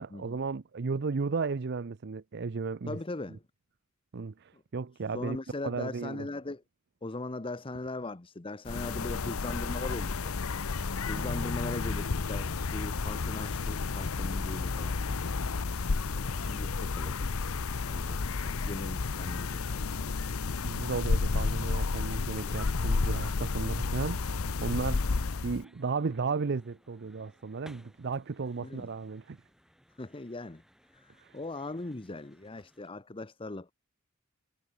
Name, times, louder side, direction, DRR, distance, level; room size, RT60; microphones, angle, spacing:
voice 1, 0.0-3.0 4.1-5.4 5.6-6.3 11.1-11.3 20.6-29.4 31.2-31.4, right 4 dB, 55° right, 0.6 m, -34 dB
voice 2, 2.9-3.4 4.5-4.6 5.1-6.6 7.0-10.3 11.0-15.3 16.1-17.2 17.8-20.1 22.4-22.8 28.6-28.9 30.0-30.6 30.9-33.7, left 2 dB, 25° left, 0.8 m, -40 dB
sound 1, 8.7-25.6, left 4 dB, 80° left, 0.8 m, -31 dB
sound 2, 24.9-32.9, equal, ahead, 5.7 m, -61 dB
head